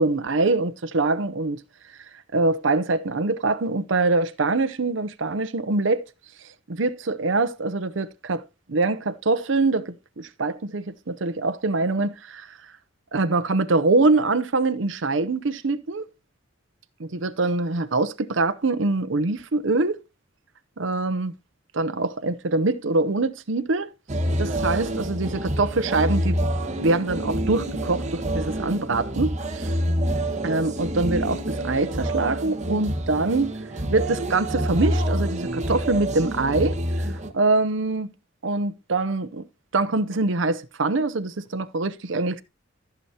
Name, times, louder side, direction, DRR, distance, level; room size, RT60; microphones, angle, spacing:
voice 1, 0.0-1.6 2.3-6.0 6.7-8.4 8.7-12.5 13.1-16.1 17.0-20.0 20.8-21.3 21.7-23.9 24.4-26.4 26.8-29.7 30.4-33.6 33.9-37.1 37.3-38.1 38.4-39.4 39.7-42.4, right 3 dB, 70° right, 0.8 m, -24 dB
sound 1, 24.1-37.3, right 1 dB, 40° right, 1.5 m, -27 dB
14.5 x 6.9 x 2.9 m
head